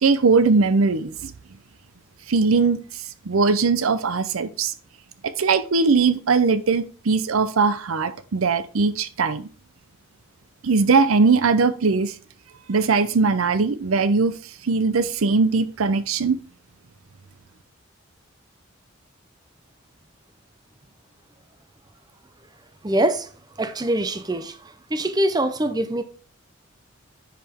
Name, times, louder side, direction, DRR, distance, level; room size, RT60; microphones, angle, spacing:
voice 1, 0.0-1.3 2.3-2.8 3.3-4.7 5.2-9.5 10.6-12.1 12.7-14.4 14.6-16.4, right 4 dB, 80° right, 0.6 m, -20 dB
voice 2, 22.8-23.3 23.6-24.6 24.9-26.0, right 1 dB, 20° right, 0.5 m, -23 dB
10.0 x 4.9 x 3.5 m
head